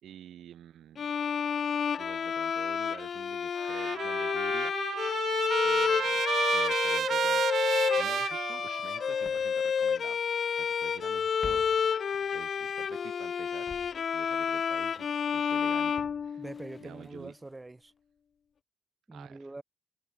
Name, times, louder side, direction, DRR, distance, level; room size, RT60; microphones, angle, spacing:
voice 1, 0.0-1.1 2.0-4.7 5.6-10.2 10.5-13.7 14.1-16.4 16.8-17.3 19.1-19.4, right 11 dB, 75° right, 4.2 m, -49 dB
Bowed string instrument, 1.0-16.8, left 7 dB, 40° left, 1.2 m, -30 dB
Trumpet, 3.6-9.2, right 9 dB, 55° right, 1.2 m, -32 dB
Walk footsteps, 8.5-8.6 9.2-10.7 11.0-13.3 13.7-17.7 18.0-18.1, left 4 dB, 25° left, 5.0 m, -52 dB
voice 2, 16.4-17.9 19.1-19.6, right 2 dB, 10° right, 5.4 m, -44 dB
wide cardioid pair, 175°, 0 cm